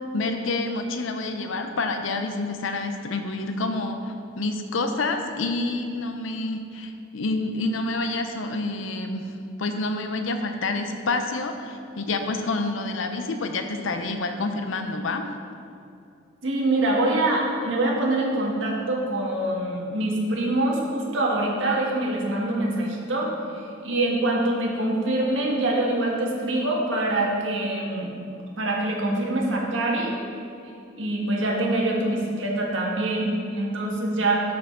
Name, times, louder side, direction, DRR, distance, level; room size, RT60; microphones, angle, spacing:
voice 1, 0.0-9.3 9.6-15.3, left 2 dB, 85° left, 6 dB, 0.6 m, -28 dB
voice 2, 16.4-28.1 28.6-30.1 31.0-34.4, right 1 dB, 80° right, -2 dB, 1.5 m, -25 dB
11.5 x 4.8 x 3.7 m, 2.5 s
head